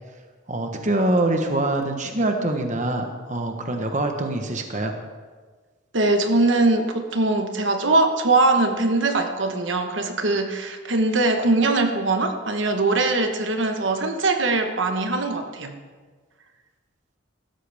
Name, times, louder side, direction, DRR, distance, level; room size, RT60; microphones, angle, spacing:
voice 1, 0.5-4.9, right 2 dB, 40° right, 4 dB, 1.1 m, -24 dB
voice 2, 5.9-15.7, right 2 dB, 70° right, 5 dB, 1.2 m, -21 dB
15.5 x 13.0 x 3.5 m, 1.4 s
head